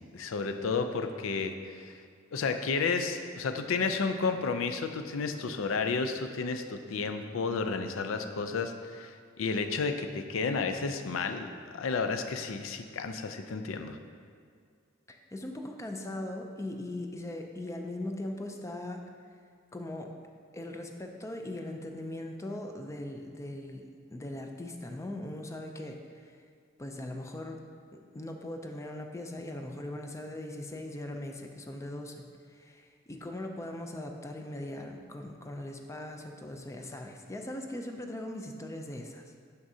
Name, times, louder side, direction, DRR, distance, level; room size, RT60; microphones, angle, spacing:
voice 1, 0.0-2.0 2.3-14.0, left 4 dB, 85° left, 7 dB, 0.4 m, -32 dB
voice 2, 15.1-19.0 19.7-20.1 20.5-26.4 26.8-27.6 28.1-39.3, left 1 dB, 15° left, 4 dB, 0.4 m, -40 dB
6.1 x 5.9 x 2.7 m, 2.2 s
head